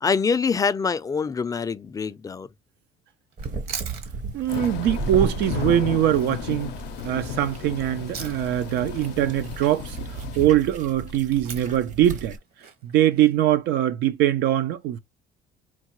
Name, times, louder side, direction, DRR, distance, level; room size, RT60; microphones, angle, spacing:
voice 1, 0.0-2.5, left 5 dB, 20° left, 0.3 m, -25 dB
Chewing mastication, 3.3-8.7 8.9-13.3, right 6 dB, 65° right, 1.3 m, -42 dB
sound 1, 3.4-12.4, right 3 dB, 45° right, 0.8 m, -35 dB
voice 2, 4.3-6.7 7.0-10.0 10.4-12.3 12.8-15.0, right 12 dB, 80° right, 0.5 m, -22 dB
Thunder / Rain, 4.5-10.5, left 10 dB, 80° left, 0.5 m, -34 dB
4.6 x 2.1 x 2.9 m
cardioid pair, 110°, 17 cm